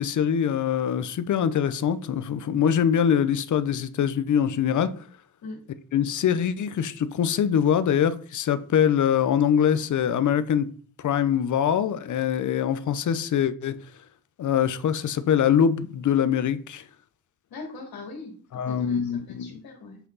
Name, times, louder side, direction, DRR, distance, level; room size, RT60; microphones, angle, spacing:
voice 1, 0.0-4.9 5.9-10.7 11.0-13.8 14.4-16.8 18.5-19.6, left 8 dB, 55° left, 0.8 m, -23 dB
voice 2, 17.5-20.0, left 3 dB, 70° left, 2.9 m, -41 dB
8.3 x 5.8 x 4.0 m
cardioid pair, 130°, 37 cm